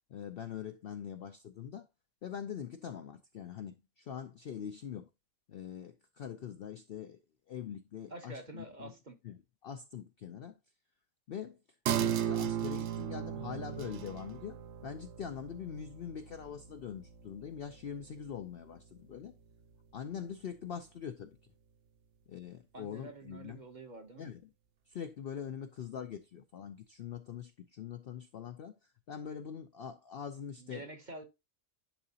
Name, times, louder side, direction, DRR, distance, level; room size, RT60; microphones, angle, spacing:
voice 1, 0.1-1.9 2.2-5.1 5.5-7.2 7.5-8.9 9.2-10.6 11.3-11.6 12.0-19.3 19.9-21.4 22.3-23.6 24.2-24.4 24.9-30.9, left 8 dB, 65° left, 0.6 m, -43 dB
voice 2, 8.1-9.2 22.7-24.3 30.6-31.2, right 2 dB, 40° right, 0.9 m, -47 dB
sound 1, 11.9-18.9 19.2-19.3, right 10 dB, 65° right, 0.8 m, -37 dB
10.5 x 3.9 x 2.8 m
omnidirectional pair, 1.5 m